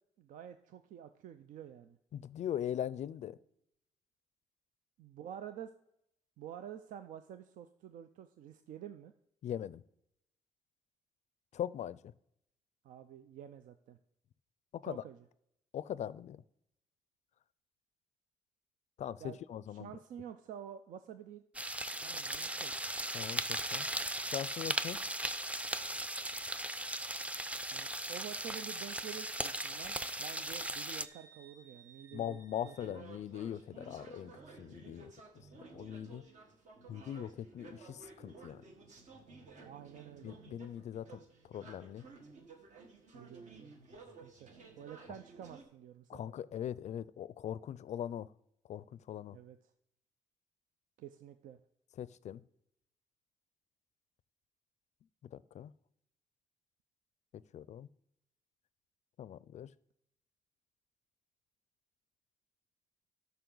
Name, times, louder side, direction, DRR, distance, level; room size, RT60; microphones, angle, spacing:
voice 1, 0.2-2.0 5.0-5.7 6.4-9.1 12.8-14.0 14.8-15.2 19.2-19.4 19.7-21.4 22.0-22.9 27.7-33.0 34.8-35.0 39.6-40.3 43.1-43.7 44.2-44.5 44.8-46.3 49.3-49.6 51.0-51.6, right 10 dB, 85° right, 0.4 m, -49 dB
voice 2, 2.1-3.4 9.4-9.8 11.5-12.1 14.8-15.0 15.7-16.4 19.0-19.9 23.1-23.9 24.3-25.0 32.1-34.3 34.6-35.1 35.7-36.2 36.9-38.6 40.2-41.2 41.5-42.0 46.1-48.3 48.7-49.4 52.0-52.4 55.3-55.7 57.5-57.9 59.2-59.7, left 10 dB, 60° left, 0.4 m, -40 dB
sound 1, 21.5-31.1, right 1 dB, 10° right, 0.4 m, -38 dB
Wind instrument woodwind instrument, 28.4-32.9, right 5 dB, 25° right, 2.6 m, -60 dB
sound 2, 32.8-45.6, right 4 dB, 65° right, 1.5 m, -55 dB
12.5 x 5.6 x 3.9 m
cardioid pair, 90°, 13 cm